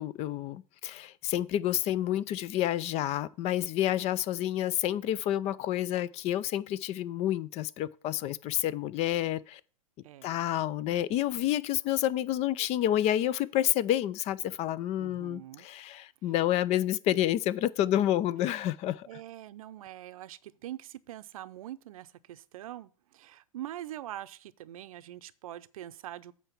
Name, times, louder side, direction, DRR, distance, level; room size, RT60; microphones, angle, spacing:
voice 1, 0.0-9.6 10.2-19.1, left 12 dB, 35° left, 0.5 m, -29 dB
voice 2, 10.0-10.3 15.0-15.7 19.1-26.3, right 13 dB, 70° right, 0.6 m, -43 dB
8.2 x 4.6 x 7.0 m
hypercardioid pair, 105°, 19 cm